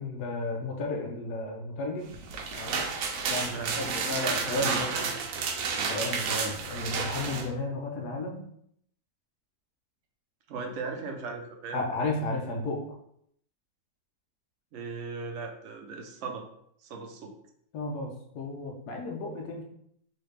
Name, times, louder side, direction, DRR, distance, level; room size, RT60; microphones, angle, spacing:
voice 1, 0.0-2.1 2.5-2.8 3.3-4.9 5.9-8.4 11.7-12.8 17.7-19.6, left 2 dB, 85° left, 1 dB, 1.3 m, -33 dB
sound 1, 2.1-7.5, right 5 dB, 85° right, 1.1 m, -31 dB
voice 2, 3.5-4.2 4.6-5.2 10.5-11.8 14.7-16.5 16.8-17.3, right 4 dB, 60° right, 2 dB, 0.9 m, -38 dB
4.1 x 2.5 x 3.2 m, 0.70 s
omnidirectional pair, 1.6 m